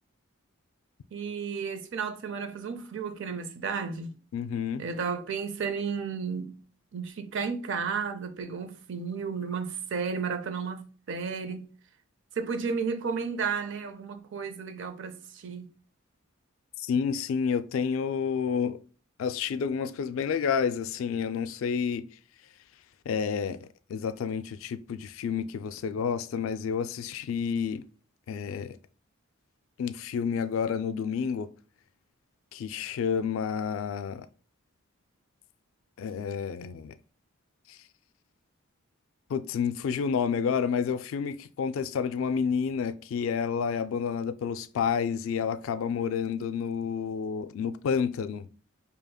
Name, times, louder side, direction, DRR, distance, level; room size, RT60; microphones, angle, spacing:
voice 1, 1.1-4.2 4.8-6.6 6.9-11.7 12.4-15.7, right 5 dB, 65° right, 0.5 m, -33 dB
voice 2, 4.3-4.8 16.8-18.8 19.2-22.1 23.1-27.8 28.3-28.8 29.8-31.5 32.5-34.3 36.0-37.0 37.7-37.8 39.3-48.4, left 6 dB, 70° left, 0.3 m, -30 dB
4.9 x 2.8 x 2.3 m
head